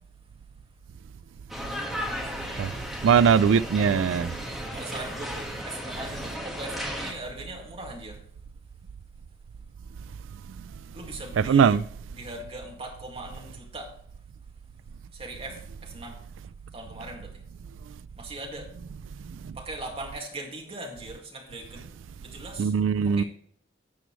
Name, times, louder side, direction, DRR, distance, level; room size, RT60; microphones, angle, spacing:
sound 1, 1.5-7.1, equal, ahead, 1.5 m, -35 dB
voice 1, 3.0-4.3 11.5-11.8 19.4-19.5 22.6-23.2, right 6 dB, 85° right, 0.3 m, -20 dB
voice 2, 4.7-8.2 10.9-11.8 12.1-13.9 15.1-16.2 16.7-17.4 18.2-18.7 19.5-21.9 22.2-23.2, right 2 dB, 30° right, 2.0 m, -40 dB
12.5 x 8.0 x 3.1 m
head